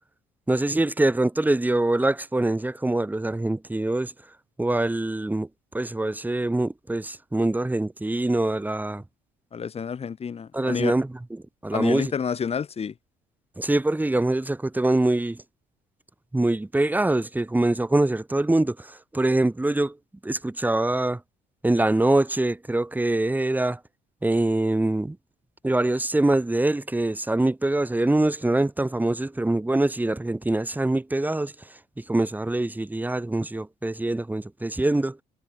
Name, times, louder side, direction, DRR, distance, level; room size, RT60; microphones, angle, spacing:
voice 1, 0.5-4.1 4.6-5.5 5.7-9.0 10.5-12.1 13.6-15.4 16.3-20.0 20.2-21.2 21.6-23.8 24.2-25.2 25.6-31.5 32.0-35.2, right 2 dB, 10° right, 6.1 m, -24 dB
voice 2, 9.5-10.9 11.7-12.9, left 6 dB, 35° left, 3.3 m, -29 dB
cardioid pair, 110°, 17 cm